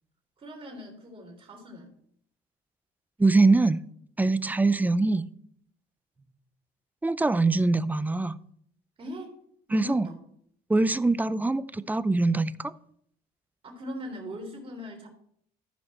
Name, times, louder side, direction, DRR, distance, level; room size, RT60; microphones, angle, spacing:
voice 1, 0.4-1.9 6.2-6.3 9.0-9.3 9.7-10.2 13.6-15.1, left 1 dB, 35° right, 0 dB, 3.5 m, -40 dB
voice 2, 3.2-3.8 4.2-5.3 7.0-8.4 9.7-10.1 10.7-12.7, right 3 dB, 10° right, 16 dB, 0.4 m, -23 dB
14.5 x 5.5 x 4.3 m, 0.67 s
cardioid pair, 110°, 17 cm